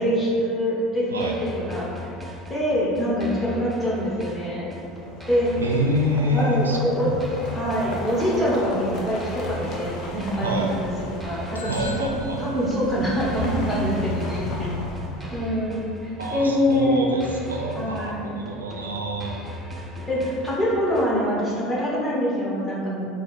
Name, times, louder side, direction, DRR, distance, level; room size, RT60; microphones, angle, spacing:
voice 1, 0.0-2.1 2.5-4.7 5.3-5.5 6.3-7.1 7.5-10.9 11.2-12.1 12.4-14.7 15.3-17.1 17.7-18.4 20.0-23.1, equal, 5° left, -7 dB, 1.2 m, -25 dB
sound 1, 1.2-21.2, left 1 dB, 10° right, 0.5 m, -39 dB
sound 2, 4.9-15.7, left 1 dB, 45° left, 0.6 m, -34 dB
voice 2, 5.6-7.2 10.4-10.8 11.7-12.5 16.2-19.4, equal, 80° right, 0 dB, 0.3 m, -27 dB
sound 3, 11.5-13.5, left 2 dB, 85° left, 0.3 m, -40 dB
3.6 x 2.1 x 4.0 m, 2.4 s
figure-of-eight pair, 70°, 0 cm